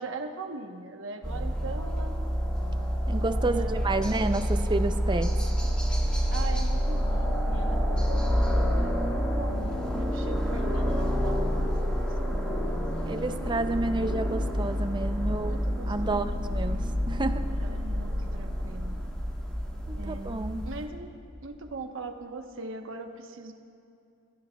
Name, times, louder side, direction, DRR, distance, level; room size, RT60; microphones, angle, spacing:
voice 1, 0.0-2.1 3.4-4.3 6.3-13.2 15.3-16.7 17.6-19.0 20.0-20.4 20.6-21.1 21.4-23.5, right 3 dB, 65° right, 5 dB, 1.0 m, -41 dB
sound 1, 1.2-20.9, equal, 5° left, 1.6 m, -28 dB
voice 2, 3.1-5.3 7.6-7.8 12.2-12.6 13.0-15.6 15.9-16.8 17.1-17.4 19.9-20.6, right 2 dB, 20° right, 9 dB, 0.5 m, -30 dB
25.0 x 15.0 x 2.3 m, 2.6 s
head